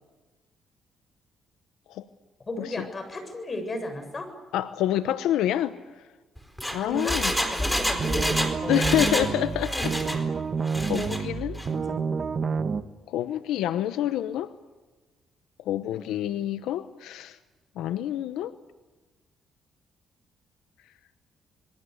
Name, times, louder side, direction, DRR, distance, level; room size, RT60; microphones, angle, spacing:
voice 1, 2.5-4.3 6.8-8.8 9.7-10.3 11.6-12.4, left 2 dB, 35° left, 8 dB, 7.4 m, -35 dB
voice 2, 4.5-5.8 6.7-7.3 8.7-9.9 10.8-11.6 13.1-14.5 15.6-17.4 17.8-18.6, left 12 dB, 90° left, 12 dB, 0.9 m, -27 dB
Engine, 6.4-9.3 9.6-10.2 10.6-11.2 11.6-11.7, equal, 5° left, 4.1 m, -28 dB
sound 1, 7.8-12.8, right 5 dB, 45° right, 1.6 m, -29 dB
27.5 x 22.0 x 8.1 m, 1.2 s
cardioid pair, 90°, 0 cm